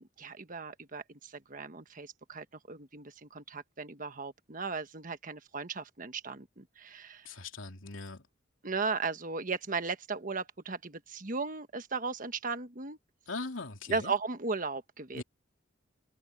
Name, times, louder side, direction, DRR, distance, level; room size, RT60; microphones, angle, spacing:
voice 1, 0.2-7.3 8.6-13.0 13.9-15.2, right 4 dB, 45° right, 1.3 m, -36 dB
voice 2, 7.2-8.3 13.3-14.1 15.1-15.2, left 3 dB, 85° left, 3.1 m, -40 dB
head